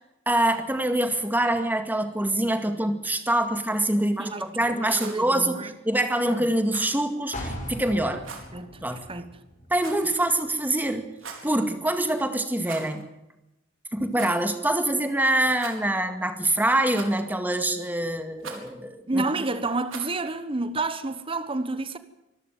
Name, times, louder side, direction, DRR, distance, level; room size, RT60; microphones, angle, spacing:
voice 1, 0.3-8.2 8.8-9.0 9.7-11.1 11.4-13.0 13.9-19.2, right 1 dB, 10° right, 2.0 m, -25 dB
voice 2, 4.0-5.7 6.2-6.5 8.1-8.2 8.5-8.8 9.1-9.3 19.1-22.0, right 3 dB, 25° right, 1.2 m, -30 dB
Rattle, 4.9-5.2 6.7-7.0 8.2-8.5 9.8-10.2 11.1-11.5 12.6-13.0 13.3-13.4 14.1-14.4 15.5-16.0 16.9-17.4 18.4-18.7 19.9-20.2, right 5 dB, 75° right, 4.3 m, -41 dB
sound 1, 7.3-11.1 11.4-11.5, left 1 dB, 35° left, 5.4 m, -39 dB
25.0 x 13.5 x 9.3 m
head